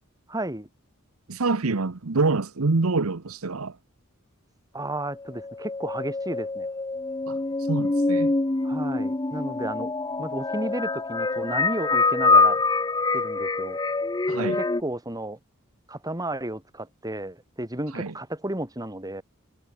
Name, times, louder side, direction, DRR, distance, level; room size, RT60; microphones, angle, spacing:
voice 1, 0.3-0.7 4.7-6.7 8.6-9.9 10.2-12.6 13.1-13.8 14.3-15.4 15.9-19.2, right 1 dB, 15° right, 4.8 m, -33 dB
voice 2, 1.3-3.8 7.3-7.4 7.7-8.3 14.3-14.6 17.9-18.1, right 3 dB, 75° right, 1.0 m, -26 dB
sound 1, 5.2-14.8, left 3 dB, 20° left, 0.7 m, -25 dB
head